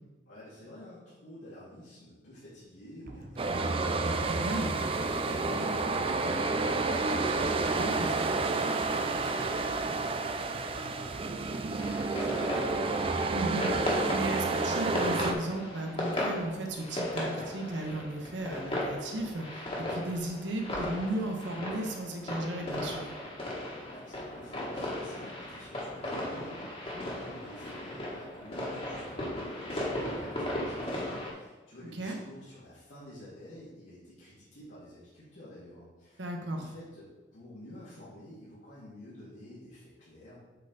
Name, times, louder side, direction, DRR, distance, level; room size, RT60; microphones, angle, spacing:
voice 1, 0.2-12.6 23.9-40.4, left 1 dB, 80° left, -11 dB, 2.5 m, -50 dB
sound 1, 3.0-15.3 15.5-15.6, right 1 dB, 55° right, 0.9 m, -48 dB
sound 2, 3.4-15.3, right 3 dB, 30° right, 0.4 m, -30 dB
voice 2, 7.8-8.1 13.3-23.1 31.9-32.2 36.2-36.6, right 1 dB, 75° right, 2 dB, 1.3 m, -35 dB
sound 3, 11.8-31.3, left 1 dB, 30° left, 1.7 m, -36 dB
8.1 x 4.4 x 4.1 m, 1.2 s
head